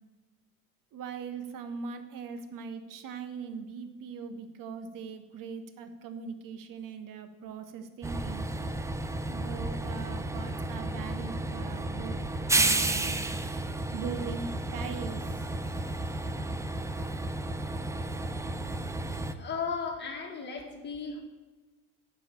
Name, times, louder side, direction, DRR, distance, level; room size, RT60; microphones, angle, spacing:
voice 1, 0.9-8.5 9.3-12.2 12.5-13.2 13.9-15.5, right 5 dB, 45° right, 9 dB, 1.2 m, -40 dB
Train, 8.0-19.3, right 2 dB, 5° right, 0.5 m, -32 dB
voice 2, 19.4-21.2, left 5 dB, 25° left, -1 dB, 2.0 m, -35 dB
9.6 x 4.9 x 6.8 m, 1.3 s
hypercardioid pair, 70°, 44 cm